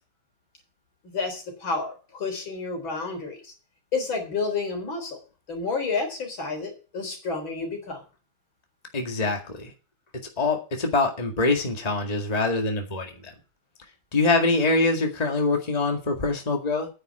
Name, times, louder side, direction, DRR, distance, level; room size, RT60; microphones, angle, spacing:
voice 1, 1.1-3.5 3.9-5.2 5.5-8.0, left 4 dB, 80° left, 3 dB, 4.4 m, -30 dB
voice 2, 8.9-9.7 10.1-13.3 13.8-16.9, left 3 dB, 20° left, 3 dB, 2.0 m, -24 dB
9.5 x 7.4 x 9.2 m, 0.35 s
omnidirectional pair, 2.2 m